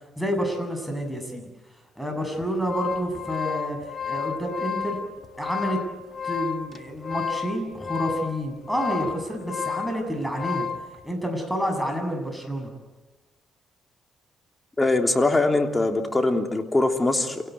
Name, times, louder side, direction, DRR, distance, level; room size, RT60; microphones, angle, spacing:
voice 1, 0.2-1.4 2.0-3.8 4.1-5.0 5.4-5.8 6.2-10.7 11.0-12.7, equal, ahead, 3 dB, 7.6 m, -29 dB
sound 1, 2.4-10.9, left 7 dB, 40° left, 1.8 m, -32 dB
voice 2, 14.8-17.5, left 2 dB, 15° left, 4 dB, 3.3 m, -22 dB
28.0 x 17.5 x 9.6 m, 1.2 s
cardioid pair, 90°, 0 cm